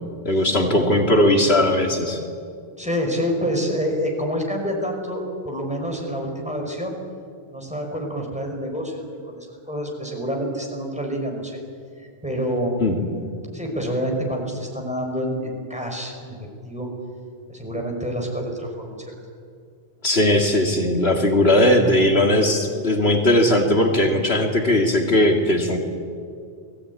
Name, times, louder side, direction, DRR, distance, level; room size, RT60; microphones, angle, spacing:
voice 1, 0.2-2.2 12.8-13.0 20.0-25.8, left 1 dB, 65° left, 3 dB, 2.7 m, -18 dB
voice 2, 2.8-6.9 7.5-11.6 12.2-12.8 13.5-16.4 16.6-16.9 17.5-18.9, equal, 5° right, 1 dB, 5.7 m, -27 dB
29.5 x 20.5 x 9.8 m, 2.3 s
omnidirectional pair, 1.1 m